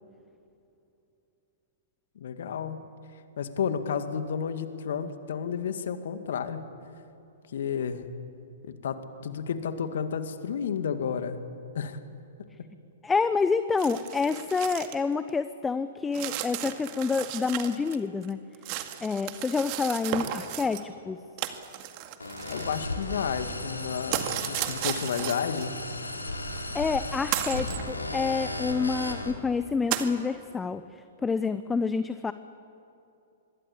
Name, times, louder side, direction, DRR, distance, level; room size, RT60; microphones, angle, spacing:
voice 1, 2.2-2.8 3.4-6.7 7.5-8.1 8.6-11.4 11.7-12.0 22.5-25.7, left 7 dB, 60° left, 9 dB, 2.0 m, -31 dB
voice 2, 13.0-18.4 19.0-21.2 26.7-32.3, left 4 dB, 10° left, 12 dB, 0.8 m, -28 dB
sound 1, 13.8-15.0 15.3-15.4 16.1-18.0 18.2-20.8 21.4-23.1 24.1-25.6 26.5-26.6 27.3-27.8 28.6-28.7 29.0-29.1 29.9-30.1, right 12 dB, 40° right, 2.0 m, -34 dB
sound 2, 22.2-29.3, left 1 dB, 85° left, 3.9 m, -35 dB
25.0 x 22.5 x 8.6 m, 2.8 s
figure-of-eight pair, 110°, 0 cm